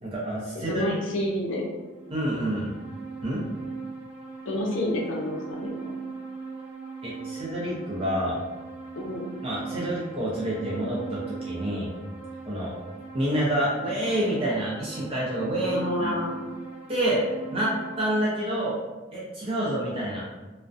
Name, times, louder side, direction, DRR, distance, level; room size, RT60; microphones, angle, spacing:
voice 1, 0.0-0.9 2.1-2.7 3.2-3.4 7.0-8.4 9.4-11.9 12.5-12.7 13.1-16.2 16.9-17.2 17.5-18.8 19.1-20.2, right 1 dB, 30° right, -6 dB, 0.4 m, -28 dB
voice 2, 0.5-1.7 4.5-5.9 9.0-9.3 15.6-16.4, left 1 dB, 80° left, -2 dB, 0.5 m, -29 dB
sound 1, 1.8-18.1, right 4 dB, 85° right, 0.9 m, -40 dB
2.3 x 2.1 x 2.5 m, 1.2 s
head